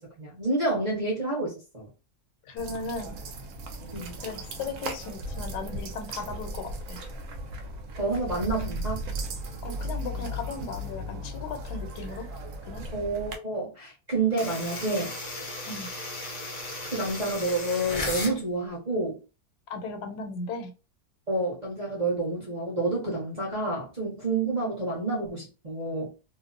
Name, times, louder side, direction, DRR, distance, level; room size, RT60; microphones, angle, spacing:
voice 1, 0.0-1.9 3.9-4.1 8.0-9.0 12.9-15.1 16.9-19.2 21.3-26.1, right 2 dB, 40° right, -4 dB, 0.7 m, -29 dB
voice 2, 2.5-3.2 4.2-7.0 9.6-12.3 12.7-12.9 15.6-15.9 19.7-20.7, left 3 dB, 90° left, 6 dB, 1.2 m, -36 dB
sound 1, 2.6-13.4, equal, 70° right, 0.8 m, -36 dB
sound 2, 14.4-18.4, left 2 dB, 70° left, 0.4 m, -35 dB
2.6 x 2.0 x 2.4 m, 0.32 s
omnidirectional pair, 1.7 m